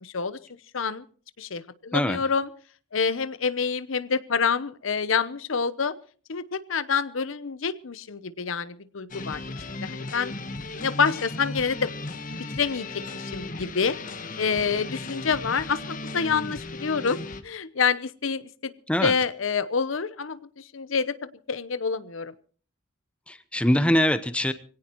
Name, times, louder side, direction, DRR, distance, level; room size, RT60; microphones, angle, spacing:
voice 1, 0.0-0.4 0.7-1.1 1.4-2.5 2.9-5.9 6.3-10.3 10.7-11.9 12.5-14.0 14.4-18.7 19.0-22.3, left 5 dB, 85° left, 15 dB, 0.9 m, -27 dB
sound 1, 9.1-17.4, left 2 dB, 45° left, 1.3 m, -36 dB
voice 2, 23.3-24.5, equal, 5° left, 11 dB, 0.9 m, -23 dB
23.5 x 17.5 x 3.1 m, 0.42 s
head